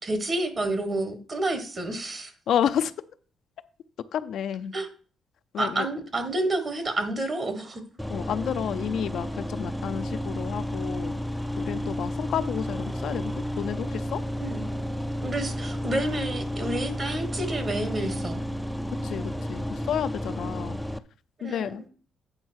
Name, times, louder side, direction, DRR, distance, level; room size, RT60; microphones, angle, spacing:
voice 1, 0.0-2.3 4.7-4.9 5.6-7.8 14.4-14.7 15.2-18.4 21.4-21.7, right 2 dB, 35° right, 9 dB, 1.5 m, -29 dB
voice 2, 2.5-2.9 4.1-4.7 5.5-5.9 8.1-11.1 11.6-14.2 19.0-20.8 21.4-21.8, left 9 dB, 70° left, 11 dB, 0.4 m, -30 dB
sound 1, 8.0-21.0, equal, ahead, 0.4 m, -32 dB
8.7 x 3.5 x 6.3 m, 0.41 s
cardioid pair, 90°, 0 cm